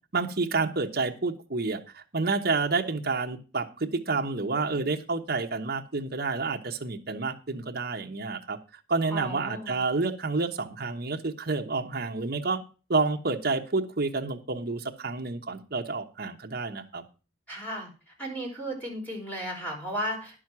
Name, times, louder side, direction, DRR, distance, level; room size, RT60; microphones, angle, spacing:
voice 1, 0.1-8.6 8.9-12.6 12.9-17.0, right 3 dB, 55° right, 3 dB, 1.1 m, -29 dB
voice 2, 9.1-9.8 17.5-17.9 18.2-20.4, right 1 dB, 10° left, -2 dB, 4.3 m, -34 dB
10.5 x 6.3 x 6.0 m, 0.34 s
head